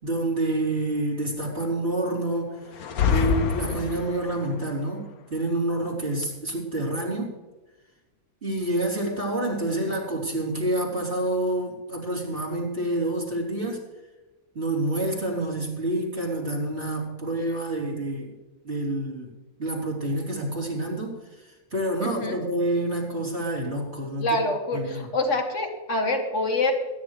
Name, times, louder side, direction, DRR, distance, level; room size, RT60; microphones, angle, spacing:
voice 1, 0.0-7.3 8.4-13.8 14.5-18.3 18.6-19.3 19.6-24.4 24.7-25.1, right 1 dB, 45° right, -3 dB, 4.1 m, -28 dB
sound 1, 2.7-4.4, left 6 dB, 85° left, 1.5 m, -25 dB
voice 2, 22.0-22.4 24.2-26.7, left 2 dB, 55° left, 2 dB, 2.5 m, -26 dB
22.5 x 10.5 x 3.3 m, 1.1 s
omnidirectional pair, 1.5 m